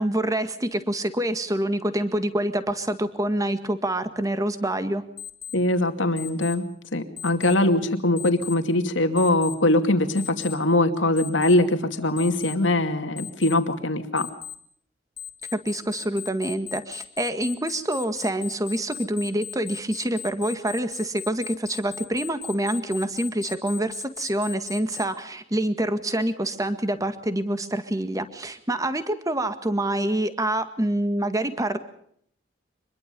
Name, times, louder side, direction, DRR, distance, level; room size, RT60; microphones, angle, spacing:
voice 1, 0.0-5.0 15.5-31.8, right 1 dB, 20° right, 10 dB, 1.8 m, -26 dB
Alarm, 5.2-5.5 6.2-6.5 7.2-7.5 8.2-8.5 9.2-9.5 10.2-10.5 11.2-11.5 12.2-12.5 13.2-13.5 14.2-14.5 15.2-25.0, left 10 dB, 30° left, 2.5 m, -37 dB
voice 2, 5.5-6.6 6.9-14.3, left 1 dB, 90° left, 7 dB, 2.5 m, -22 dB
25.5 x 21.5 x 5.4 m, 0.65 s
head